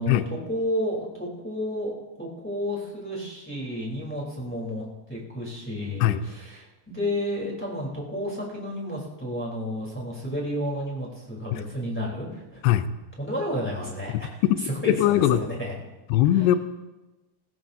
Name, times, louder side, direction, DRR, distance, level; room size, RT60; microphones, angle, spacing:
voice 1, 0.0-1.9 2.2-12.6 13.2-14.3 14.6-15.7 16.3-16.5, equal, 5° left, -4 dB, 2.3 m, -31 dB
voice 2, 14.1-15.4 16.1-16.6, left 13 dB, 80° left, 12 dB, 2.6 m, -21 dB
20.5 x 16.5 x 2.7 m, 1.1 s
omnidirectional pair, 5.0 m